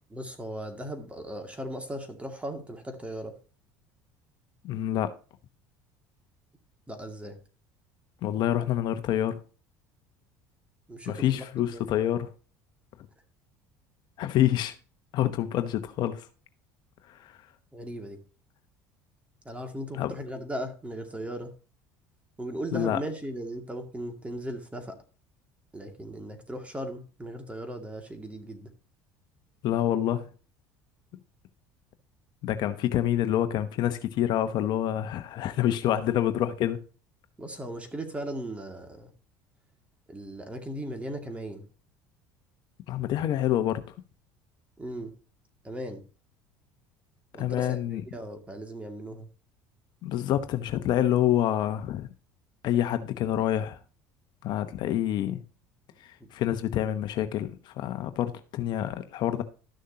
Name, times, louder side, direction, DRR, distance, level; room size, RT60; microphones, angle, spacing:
voice 1, 0.1-3.4 6.9-7.4 10.9-11.5 11.7-11.8 17.7-18.2 19.4-21.5 22.4-25.0 25.7-28.7 37.4-39.1 40.1-41.6 44.8-45.1 45.6-46.0 47.3-49.3 56.2-56.3, right 1 dB, 15° right, 2.3 m, -37 dB
voice 2, 4.6-5.1 8.2-9.4 11.1-12.3 14.2-14.7 15.1-16.3 17.1-17.4 19.9-20.1 22.7-23.0 29.6-30.3 32.4-36.8 42.9-43.8 47.4-48.0 50.0-52.1 52.6-53.8 54.4-55.4 56.0-59.4, left 11 dB, 60° left, 0.9 m, -27 dB
12.5 x 6.5 x 2.8 m
supercardioid pair, 90°, 9 cm